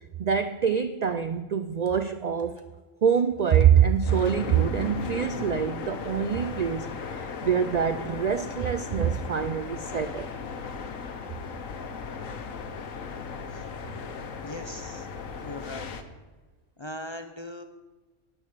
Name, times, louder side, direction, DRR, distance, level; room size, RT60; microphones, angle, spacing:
voice 1, 0.2-2.6 3.0-10.3, right 8 dB, 80° right, 10 dB, 0.3 m, -25 dB
sound 1, 4.1-16.0, left 5 dB, 85° left, 1.4 m, -37 dB
voice 2, 14.4-15.1 15.4-15.9 16.8-17.6, left 1 dB, 35° left, 6 dB, 0.4 m, -39 dB
9.7 x 9.1 x 6.7 m, 1.2 s
omnidirectional pair, 1.3 m